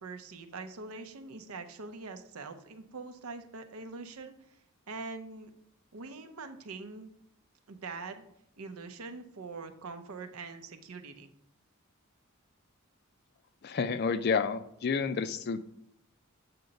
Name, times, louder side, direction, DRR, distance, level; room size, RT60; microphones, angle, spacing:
voice 1, 0.0-4.3 4.9-5.5 5.9-7.1 7.7-8.2 8.6-11.3, right 4 dB, 85° right, 7 dB, 0.6 m, -43 dB
voice 2, 13.6-15.6, left 5 dB, 45° left, 13 dB, 0.3 m, -30 dB
7.6 x 2.9 x 5.1 m, 0.75 s
head